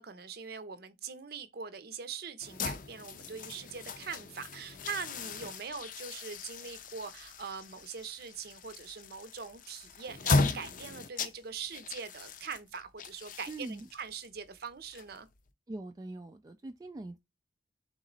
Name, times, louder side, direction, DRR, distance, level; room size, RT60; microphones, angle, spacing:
voice 1, 0.0-15.3, right 6 dB, 60° right, 0.6 m, -42 dB
sound 1, 2.4-15.5, left 4 dB, 50° left, 0.5 m, -37 dB
voice 2, 13.5-13.9 15.7-17.2, right 2 dB, 20° right, 0.3 m, -42 dB
3.8 x 3.0 x 3.9 m
head